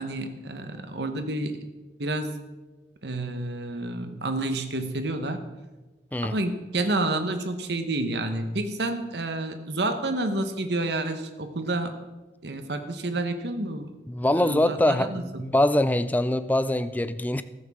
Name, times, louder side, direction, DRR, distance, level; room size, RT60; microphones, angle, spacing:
voice 1, 0.0-1.6 2.0-2.4 3.0-5.4 6.2-12.0 12.4-13.9 14.3-15.5, right 2 dB, 65° right, 8 dB, 1.1 m, -29 dB
voice 2, 14.1-15.1 15.4-17.4, left 1 dB, 10° left, 12 dB, 0.4 m, -23 dB
14.5 x 12.5 x 3.7 m, 1.2 s
head